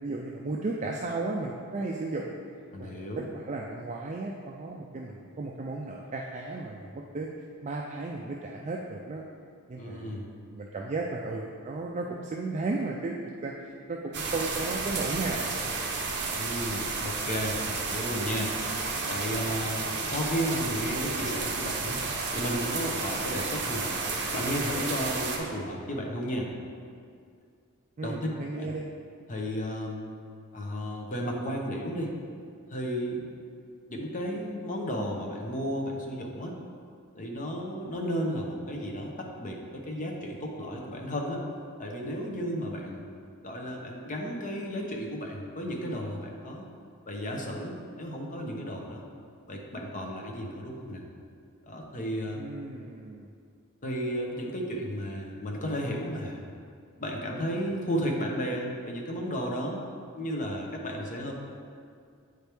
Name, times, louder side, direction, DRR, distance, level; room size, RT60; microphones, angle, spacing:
voice 1, 0.0-2.4 2.8-7.3 7.6-9.2 9.7-10.2 10.5-13.2 13.4-15.7 28.0-28.9 52.4-53.3, right 3 dB, 35° right, -1 dB, 0.4 m, -34 dB
voice 2, 2.7-3.3 9.7-10.3 16.3-18.7 19.0-22.0 22.3-24.0 24.3-26.5 28.0-28.2 28.5-28.7 29.3-30.1 30.5-32.1 32.7-33.3 33.9-36.6 37.2-41.4 41.8-43.0 43.4-46.6 47.1-49.0 49.5-51.0 51.6-52.5 53.8-56.4 57.0-59.9 60.1-61.3, equal, 35° left, 0 dB, 0.8 m, -33 dB
sound 1, 14.1-25.4, right 4 dB, 50° right, 0.8 m, -32 dB
8.0 x 4.5 x 3.4 m, 2.3 s
head